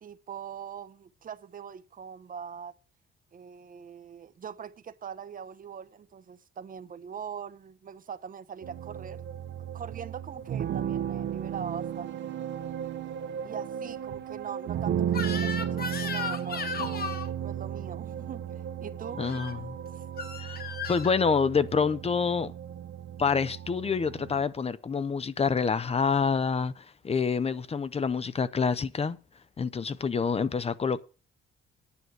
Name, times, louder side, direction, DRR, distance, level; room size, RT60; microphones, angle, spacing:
voice 1, 0.0-2.7 3.3-9.2 9.7-12.3 13.4-19.2 20.0-20.1, right 7 dB, 45° right, 0.8 m, -42 dB
sound 1, 8.6-24.4, right 9 dB, 65° right, 0.9 m, -34 dB
Crying sobbing / Screech, 15.1-17.3 19.2-19.5 20.2-21.2, left 5 dB, 50° left, 1.7 m, -35 dB
voice 2, 19.2-19.8 20.4-20.6 20.9-22.5 23.2-29.2 29.6-31.0, left 5 dB, 30° left, 0.7 m, -27 dB
9.9 x 6.2 x 7.9 m
cardioid pair, 90°, 20 cm